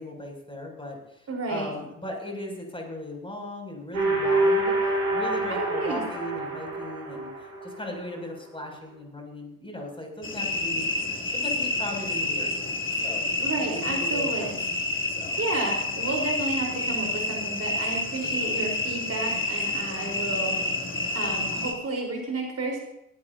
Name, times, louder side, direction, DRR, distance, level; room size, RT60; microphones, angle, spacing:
voice 1, 0.0-4.7 5.1-7.3 7.6-10.8 11.3-12.6 13.0-13.3 13.7-14.6 15.2-15.4 18.2-18.6, left 1 dB, 10° left, 1 dB, 7.3 m, -37 dB
voice 2, 1.3-1.7 5.5-6.0 13.4-14.6 15.4-20.8 21.1-22.8, right 2 dB, 35° right, 0 dB, 4.5 m, -31 dB
sound 1, 3.9-7.9, right 2 dB, 80° right, 7.1 m, -26 dB
sound 2, 10.2-21.7, left 2 dB, 30° left, 3.2 m, -29 dB
19.5 x 18.5 x 2.9 m, 0.81 s
figure-of-eight pair, 50°, 42 cm